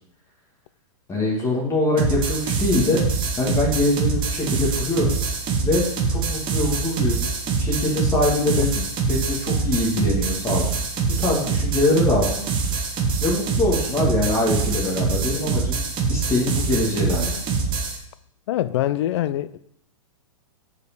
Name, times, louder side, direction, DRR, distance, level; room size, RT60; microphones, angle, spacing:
voice 1, 1.1-3.0 3.4-5.1 5.6-7.2 7.6-8.8 9.0-10.9 11.2-12.4 13.2-15.8 16.1-17.3, left 2 dB, 15° left, 2.6 m, -23 dB
sound 1, 2.0-18.0, right 5 dB, 25° right, 1.4 m, -24 dB
voice 2, 8.6-8.9 18.5-19.6, left 13 dB, 50° left, 0.5 m, -24 dB
6.5 x 5.3 x 7.0 m
hypercardioid pair, 125°, 18 cm